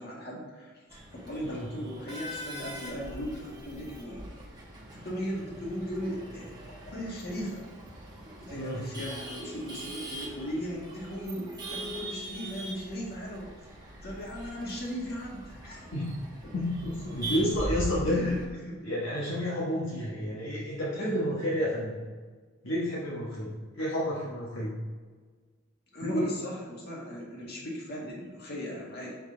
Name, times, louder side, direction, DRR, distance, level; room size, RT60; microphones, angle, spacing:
voice 1, 0.0-4.2 4.9-6.5 6.9-7.6 8.4-13.5 13.8-16.0 18.1-18.4 18.7-18.9 21.0-21.1 25.9-29.2, equal, 55° left, -3 dB, 1.9 m, -38 dB
Male speech man speaking / Laughter / Chatter, 0.9-18.4, right 1 dB, 20° right, 1.2 m, -41 dB
voice 2, 8.5-8.9 15.9-16.1 16.5-18.3 18.8-22.0 22.6-24.8 26.0-26.4, equal, 70° left, -7 dB, 1.3 m, -30 dB
6.5 x 5.1 x 3.9 m, 1.5 s
head